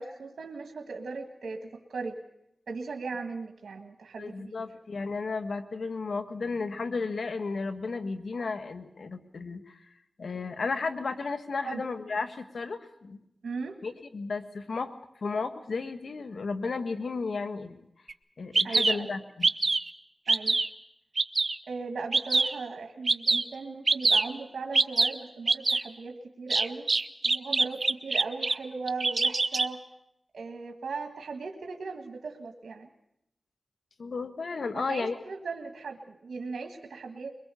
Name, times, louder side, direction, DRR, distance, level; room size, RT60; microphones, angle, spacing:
voice 1, 0.0-2.2 2.7-4.5 11.6-11.9 13.4-13.8 18.6-19.1 20.3-20.6 21.7-26.9 27.2-29.8 30.3-32.9 34.7-37.3, right 4 dB, 85° right, 3 dB, 1.7 m, -38 dB
voice 2, 4.2-9.8 10.2-13.2 13.8-14.9 15.2-17.8 18.4-19.5 34.0-35.2, left 4 dB, 80° left, 8 dB, 1.6 m, -33 dB
Bird vocalization bird call bird song, 18.1-18.2 18.5-18.9 19.4-19.9 20.3-20.7 21.2-21.6 22.1-22.5 23.1-23.4 23.9-24.2 24.7-25.1 25.5-25.8 26.5-28.5 28.9-29.7, right 3 dB, 55° right, 0.9 m, -24 dB
23.0 x 21.0 x 6.9 m, 0.80 s
cardioid pair, 40°, 0 cm